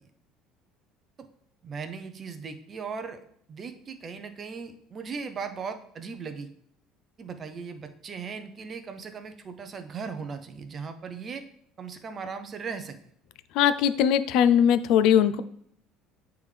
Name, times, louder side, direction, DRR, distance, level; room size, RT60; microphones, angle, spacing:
voice 1, 1.6-3.2 3.5-6.5 7.2-11.4 11.8-13.0, right 5 dB, 25° right, 8 dB, 0.5 m, -38 dB
voice 2, 13.5-15.4, left 9 dB, 60° left, 13 dB, 0.4 m, -20 dB
8.9 x 3.5 x 3.2 m, 0.69 s
cardioid pair, 170°, 0 cm